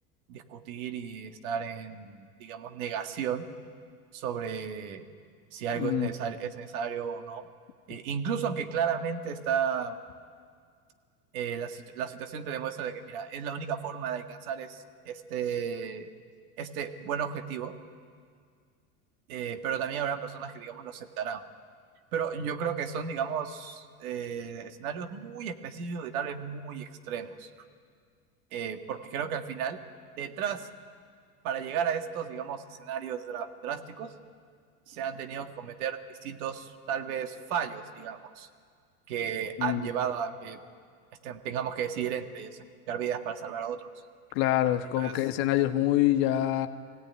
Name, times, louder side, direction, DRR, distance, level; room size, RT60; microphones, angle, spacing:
voice 1, 0.3-3.5 4.1-5.1 5.5-7.5 7.9-10.0 11.3-16.1 16.6-17.7 19.3-21.4 22.1-27.5 28.5-29.8 30.2-30.7 31.4-34.1 34.9-38.5 39.1-40.6 41.2-42.5 42.9-43.9 45.0-45.1, right 7 dB, 75° right, 7 dB, 1.9 m, -34 dB
voice 2, 5.7-6.1 39.6-39.9 44.3-46.7, left 14 dB, 60° left, 6 dB, 1.4 m, -26 dB
22.5 x 16.5 x 9.6 m, 2.1 s
supercardioid pair, 105°, 43 cm